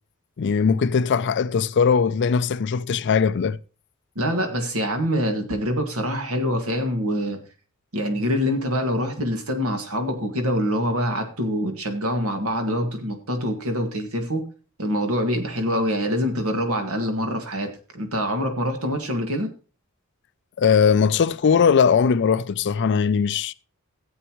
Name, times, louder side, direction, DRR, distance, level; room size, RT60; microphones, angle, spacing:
voice 1, 0.4-3.6 20.6-23.5, left 6 dB, 55° left, 0.4 m, -20 dB
voice 2, 4.2-7.4 7.9-14.5 14.8-19.5, equal, 70° right, 2.0 m, -25 dB
15.5 x 8.1 x 3.1 m
head